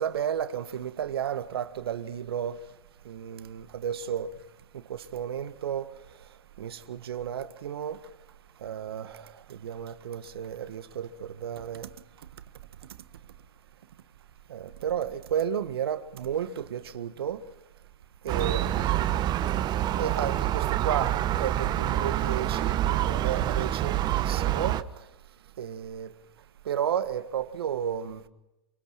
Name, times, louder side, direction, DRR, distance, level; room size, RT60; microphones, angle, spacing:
voice 1, 0.0-2.6 3.0-4.3 4.9-5.9 6.6-8.0 8.6-11.9 14.5-17.4 18.2-19.1 20.0-24.8 25.6-26.1 26.6-28.2, right 9 dB, 70° right, 1.7 m, -32 dB
Gull seagull, 18.3-24.8, right 12 dB, 35° right, 1.2 m, -27 dB
28.0 x 23.5 x 5.9 m
hypercardioid pair, 105°, 13 cm